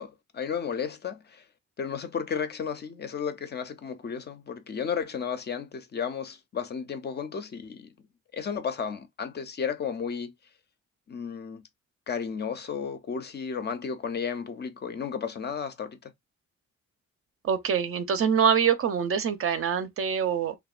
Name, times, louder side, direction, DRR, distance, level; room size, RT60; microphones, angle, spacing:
voice 1, 0.0-1.4 1.8-7.9 8.3-10.3 11.1-11.6 12.1-16.1, left 6 dB, 35° left, 0.4 m, -33 dB
voice 2, 17.4-20.5, right 7 dB, 45° right, 0.5 m, -25 dB
2.8 x 2.2 x 2.3 m
cardioid pair, 90°, 30 cm